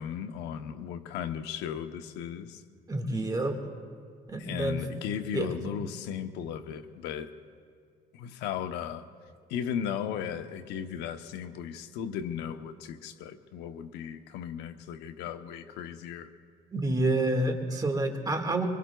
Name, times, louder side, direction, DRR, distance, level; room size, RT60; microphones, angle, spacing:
voice 1, 0.0-2.6 4.4-7.3 8.1-9.0 9.5-16.3, left 8 dB, 90° left, 8 dB, 0.9 m, -36 dB
voice 2, 2.9-3.6 4.3-4.8 5.3-5.7 16.7-18.7, right 2 dB, 20° right, 4 dB, 1.8 m, -28 dB
25.5 x 24.0 x 2.3 m, 2.1 s
cardioid pair, 110°, 17 cm